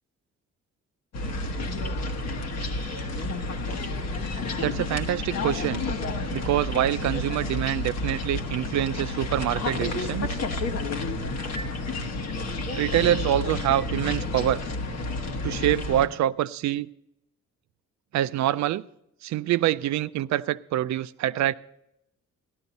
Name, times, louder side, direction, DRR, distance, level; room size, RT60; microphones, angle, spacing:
sound 1, 1.1-16.1, left 2 dB, 60° left, 1.5 m, -30 dB
voice 1, 4.6-5.8 6.3-10.4 12.7-14.6 15.4-16.9 18.1-18.8 19.2-21.5, right 13 dB, 65° right, 0.4 m, -25 dB
13.5 x 12.0 x 4.1 m
cardioid pair, 90°, 30 cm